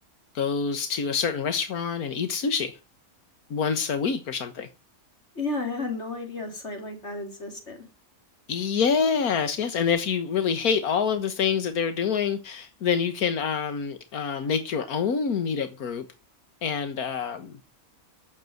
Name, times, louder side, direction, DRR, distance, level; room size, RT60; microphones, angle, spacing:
voice 1, 0.4-2.8 3.5-4.7 8.5-16.1 16.6-17.5, left 6 dB, 85° left, 1.7 m, -26 dB
voice 2, 5.4-7.8, left 3 dB, 50° left, 3.9 m, -32 dB
12.0 x 8.5 x 7.8 m
omnidirectional pair, 1.5 m